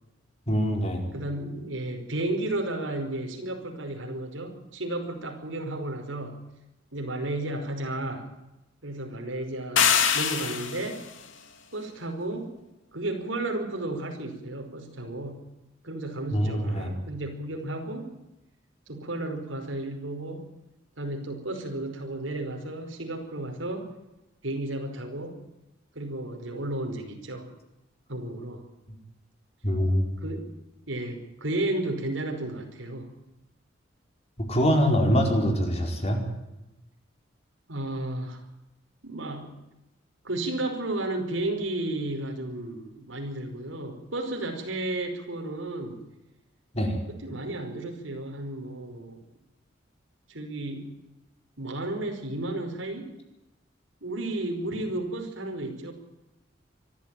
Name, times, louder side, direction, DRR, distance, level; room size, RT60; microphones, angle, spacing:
voice 1, 0.5-1.0 16.3-16.9 29.6-30.1 34.4-36.2 46.7-47.0, equal, 35° left, 3 dB, 4.7 m, -24 dB
voice 2, 1.1-6.4 6.9-8.3 8.8-11.0 11.7-12.5 12.9-15.4 15.8-18.1 18.9-20.5 21.0-23.9 24.4-25.4 26.0-27.5 28.1-28.6 30.2-30.5 30.9-33.1 37.7-38.4 39.0-39.6 40.2-46.0 47.1-49.2 50.3-50.9 51.6-53.1 54.0-55.9, right 2 dB, 90° right, 4 dB, 5.2 m, -33 dB
sound 1, 9.8-11.0, left 7 dB, 85° left, 2.7 m, -23 dB
24.5 x 14.0 x 9.2 m, 0.95 s
head